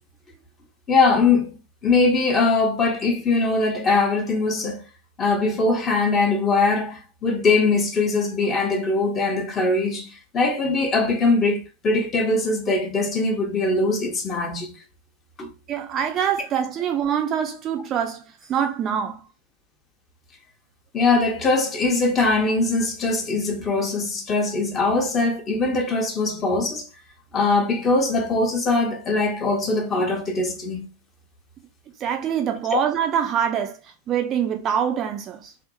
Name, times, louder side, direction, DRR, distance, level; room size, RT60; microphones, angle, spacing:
voice 1, 0.9-1.6 1.8-4.8 5.2-14.7 15.4-15.5 20.9-26.9 27.3-30.9 32.7-32.8, left 3 dB, 25° left, 0.7 m, -21 dB
voice 2, 15.7-18.2 18.5-19.2 32.0-33.8 34.1-35.5, right 8 dB, 30° right, 0.4 m, -24 dB
2.6 x 2.0 x 2.6 m
figure-of-eight pair, 90°, 0 cm